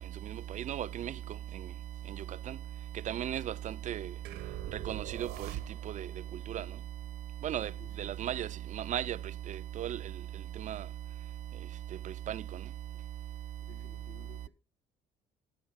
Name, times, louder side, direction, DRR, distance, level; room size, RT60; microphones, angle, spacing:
voice 1, 0.5-1.1 2.5-2.6 3.1-4.1 4.9-5.5 5.9-6.1 6.5-6.6 7.4-7.7 8.0-8.5 8.8-9.2 9.8-10.0 10.7-10.8 12.3-12.4, right 11 dB, 45° right, 0.5 m, -35 dB
sound 1, 4.3-6.1, right 12 dB, 90° right, 1.1 m, -43 dB
voice 2, 7.7-8.0 13.6-14.5, left 7 dB, 85° left, 5.0 m, -56 dB
15.0 x 5.7 x 5.7 m
cardioid pair, 110°, 17 cm